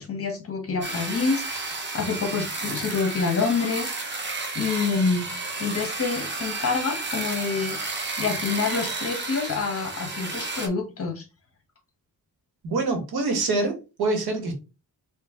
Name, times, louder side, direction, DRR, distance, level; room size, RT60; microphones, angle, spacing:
voice 1, 0.0-11.2, left 4 dB, 35° left, 1.2 m, -27 dB
sound 1, 0.8-10.7, right 3 dB, 30° right, 0.8 m, -32 dB
voice 2, 12.6-14.5, right 3 dB, 80° right, 1.6 m, -25 dB
4.4 x 2.8 x 3.7 m
wide cardioid pair, 165°, 38 cm